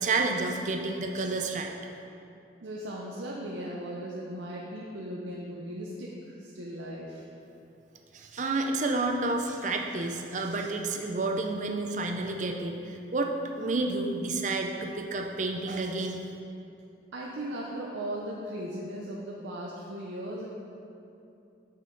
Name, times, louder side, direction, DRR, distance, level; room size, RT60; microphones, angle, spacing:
voice 1, 0.0-1.7 8.1-16.2, right 3 dB, 40° right, 3 dB, 0.5 m, -30 dB
voice 2, 2.6-7.2 17.1-20.5, right 1 dB, 90° right, -4 dB, 0.6 m, -37 dB
6.4 x 5.6 x 3.9 m, 2.7 s
head